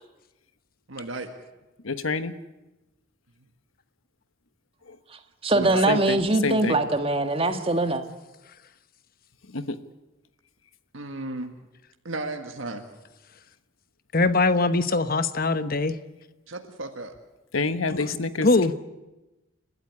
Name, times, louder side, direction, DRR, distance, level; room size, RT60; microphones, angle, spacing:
voice 1, 0.9-1.3 5.5-5.9 10.9-11.5 12.0-12.8 16.5-17.1, right 2 dB, 75° right, 4 dB, 1.8 m, -34 dB
voice 2, 1.8-2.3 5.9-6.2 6.4-6.8 9.5-9.8 17.5-18.5, left 3 dB, 85° left, 11 dB, 1.2 m, -27 dB
voice 3, 5.4-8.0, right 2 dB, 30° right, 7 dB, 1.6 m, -22 dB
voice 4, 14.1-15.9 17.9-18.0 18.4-18.7, left 3 dB, 45° left, 12 dB, 1.0 m, -22 dB
30.0 x 13.0 x 9.8 m, 1.1 s
head